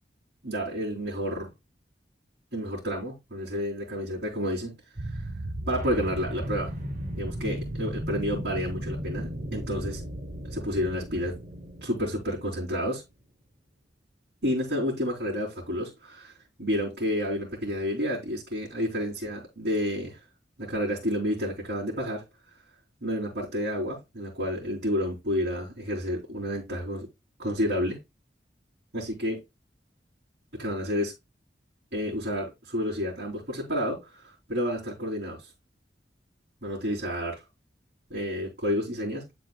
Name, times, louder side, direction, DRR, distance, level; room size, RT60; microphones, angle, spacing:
voice 1, 0.4-1.5 2.5-4.7 5.1-5.2 5.7-6.7 7.2-10.0 10.4-11.3 11.8-13.0 14.4-16.3 16.6-20.2 20.6-22.2 23.0-27.1 27.4-28.0 28.9-29.4 30.6-31.1 31.9-35.4 36.6-37.3 38.1-39.2, equal, 65° right, 3.5 m, -30 dB
sound 1, 5.0-12.7, right 1 dB, 45° right, 1.2 m, -35 dB
11.0 x 4.4 x 2.4 m
head